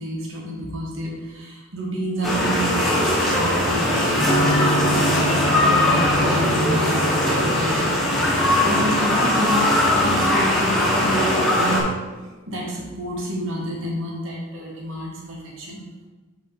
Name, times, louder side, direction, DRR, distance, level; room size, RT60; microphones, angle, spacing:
voice 1, 0.0-7.9 8.6-11.9 12.5-15.8, equal, 70° right, -3 dB, 1.5 m, -29 dB
sound 1, 2.2-11.8, left 1 dB, ahead, 1.6 m, -20 dB
Electric guitar / Strum, 4.2-9.9, equal, 55° left, 1.5 m, -27 dB
8.2 x 4.8 x 3.4 m, 1.3 s
head